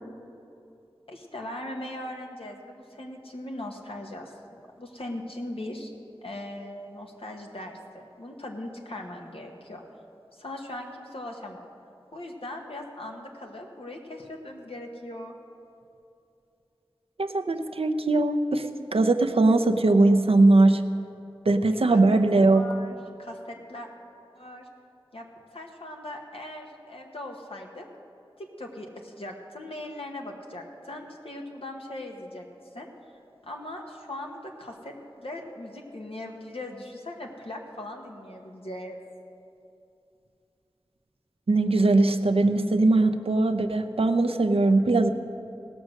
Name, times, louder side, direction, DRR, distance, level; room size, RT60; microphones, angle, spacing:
voice 1, 1.1-5.9 6.2-9.8 10.3-11.7 12.1-15.3 21.7-23.9 24.3-24.7 25.1-25.3 25.5-27.9 28.4-32.5 32.7-32.9 33.4-39.0, left 1 dB, 80° left, 1 dB, 1.1 m, -39 dB
voice 2, 17.2-18.7 18.9-20.8 21.5-22.6 41.5-45.1, right 2 dB, 85° right, 6 dB, 0.6 m, -20 dB
18.0 x 6.3 x 6.3 m, 2.7 s
wide cardioid pair, 45°, 10 cm